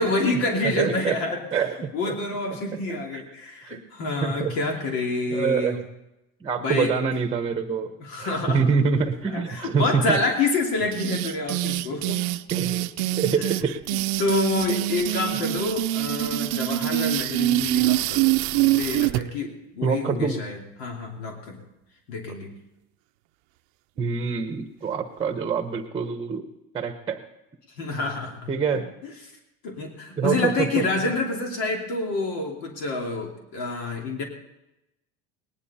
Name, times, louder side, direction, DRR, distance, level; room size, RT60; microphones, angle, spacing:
voice 1, 0.0-1.6 1.9-5.8 6.6-6.9 8.0-8.6 9.3-12.2 13.1-13.5 13.9-21.6 22.1-22.5 27.8-28.5 29.0-29.1 29.6-34.2, left 3 dB, 80° left, 1 dB, 2.9 m, -28 dB
voice 2, 0.6-1.1 1.5-2.1 3.1-3.2 3.7-3.8 4.2-4.5 5.3-5.8 6.4-7.9 8.2-10.2 12.5-12.9 13.2-13.8 19.8-20.4 24.0-26.5 26.7-27.2 28.5-28.9 30.2-30.7 31.0-31.1, right 5 dB, 15° right, 6 dB, 1.0 m, -25 dB
sound 1, 10.9-19.2, right 16 dB, 70° right, 0.6 m, -25 dB
19.0 x 11.0 x 4.3 m, 0.91 s
cardioid pair, 145°, 30 cm